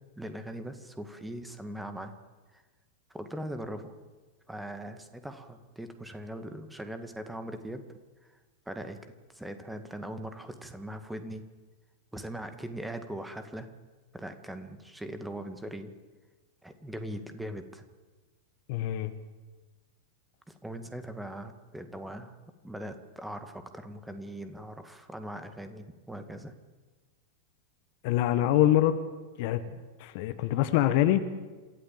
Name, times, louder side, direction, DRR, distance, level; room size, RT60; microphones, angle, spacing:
voice 1, 0.2-2.1 2.5-2.6 3.1-3.9 4.5-7.8 8.3-8.4 8.7-11.4 12.1-13.7 14.1-15.9 16.6-17.8 20.5-22.4 22.6-26.5 29.7-29.8, right 1 dB, 5° right, 8 dB, 1.9 m, -40 dB
voice 2, 18.7-19.1 28.0-28.9 29.4-29.6 30.0-31.2, left 13 dB, 50° left, 11 dB, 1.3 m, -24 dB
27.5 x 14.0 x 7.7 m, 1.3 s
figure-of-eight pair, 90°, 0 cm